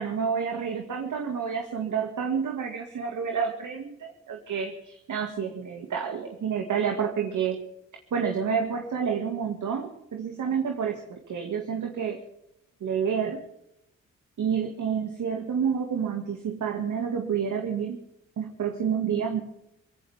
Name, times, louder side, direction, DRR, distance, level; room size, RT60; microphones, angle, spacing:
voice 1, 0.0-7.6 8.1-12.2 12.8-13.4 14.4-18.0 18.4-19.4, right 7 dB, 60° right, 3 dB, 2.3 m, -29 dB
22.0 x 16.5 x 3.6 m, 0.82 s
hypercardioid pair, 50°, 34 cm